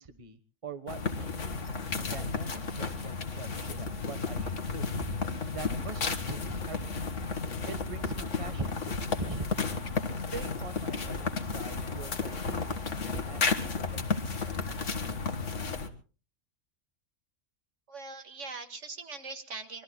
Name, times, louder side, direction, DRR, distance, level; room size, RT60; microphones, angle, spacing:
voice 1, 0.0-1.6 2.0-4.9 5.5-7.0 7.7-9.5 10.1-14.9, right 3 dB, 25° right, 10 dB, 1.2 m, -43 dB
sound 1, 0.9-15.9, left 4 dB, 70° left, 1.9 m, -33 dB
voice 2, 17.9-19.8, right 4 dB, 70° right, 7 dB, 2.1 m, -41 dB
26.0 x 22.0 x 2.2 m, 0.36 s
omnidirectional pair, 1.3 m